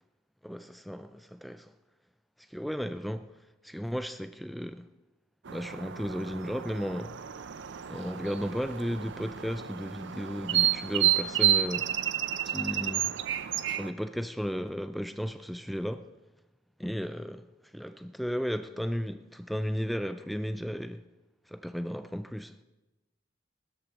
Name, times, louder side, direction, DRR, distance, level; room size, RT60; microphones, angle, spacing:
voice 1, 0.4-1.7 2.5-3.3 3.6-4.9 5.5-7.2 7.9-11.9 12.4-13.1 13.7-16.1 16.8-17.5 17.7-21.0 21.5-22.6, equal, ahead, 0.3 m, -34 dB
sound 1, 5.5-13.9, right 11 dB, 65° right, 0.5 m, -30 dB
19.0 x 13.0 x 3.0 m
head